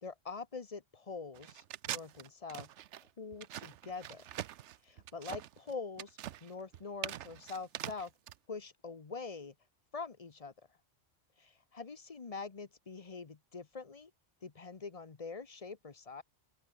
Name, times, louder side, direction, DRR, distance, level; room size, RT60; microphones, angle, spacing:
voice 1, 0.0-2.7 3.2-4.4 4.8-8.1 8.5-9.5 9.9-10.5 11.4-14.1 14.4-16.2, left 4 dB, 35° left, 0.9 m, -44 dB
sound 1, 1.3-8.3, right 12 dB, 75° right, 0.9 m, -43 dB
open air
omnidirectional pair, 1.2 m